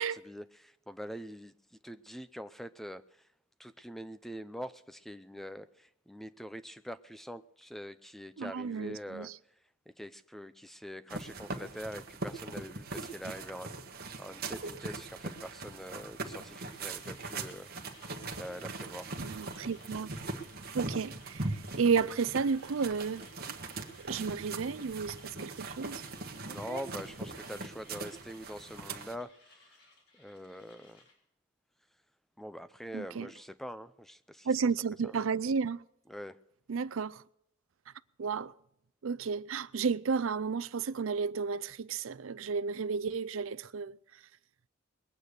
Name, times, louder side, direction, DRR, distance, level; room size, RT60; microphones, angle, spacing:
voice 1, 0.0-3.0 3.6-9.3 10.0-13.8 14.2-19.1 26.4-29.6 30.1-31.0 32.4-34.5 35.0-35.2 36.1-36.4, equal, ahead, 0.5 m, -44 dB
voice 2, 8.4-9.3 19.2-20.1 20.7-21.5 21.8-23.6 24.0-26.0 32.9-33.3 34.5-35.8 36.7-37.2 38.2-38.5 39.0-44.0, right 5 dB, 80° right, 0.5 m, -32 dB
sound 1, 11.1-29.2, right 3 dB, 50° right, 1.5 m, -41 dB
Mechanisms, 16.6-31.2, left 2 dB, 55° left, 5.2 m, -61 dB
21.0 x 9.0 x 6.7 m
head